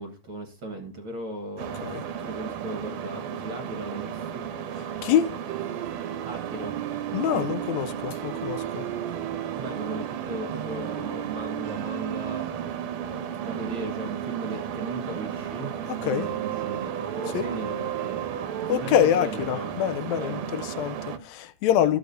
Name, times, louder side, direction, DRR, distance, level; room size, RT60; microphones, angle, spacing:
voice 1, 0.0-1.8 2.2-4.4 6.2-6.8 7.1-7.5 9.6-12.5 13.0-19.7 20.1-20.5 21.8-22.0, right 2 dB, 50° right, 1.8 m, -37 dB
sound 1, 1.6-21.2, right 8 dB, 70° right, 1.8 m, -35 dB
voice 2, 4.7-5.4 7.1-8.9 15.9-16.3 17.3-17.5 18.7-22.0, left 10 dB, 80° left, 1.6 m, -25 dB
sound 2, 5.5-18.7, right 14 dB, 85° right, 1.6 m, -36 dB
13.5 x 7.0 x 2.6 m
omnidirectional pair, 3.8 m